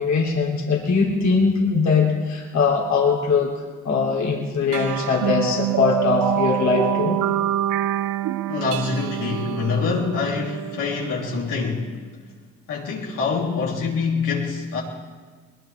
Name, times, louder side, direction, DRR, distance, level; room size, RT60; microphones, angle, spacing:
voice 1, 0.0-3.5 3.8-7.2, left 5 dB, 65° left, -1 dB, 3.0 m, -21 dB
sound 1, 4.7-11.6, right 13 dB, 85° right, 0.6 m, -26 dB
voice 2, 8.5-11.9 12.7-14.8, left 5 dB, 85° left, -4 dB, 3.3 m, -25 dB
21.0 x 20.5 x 3.4 m, 1.5 s
cardioid pair, 90°, 30 cm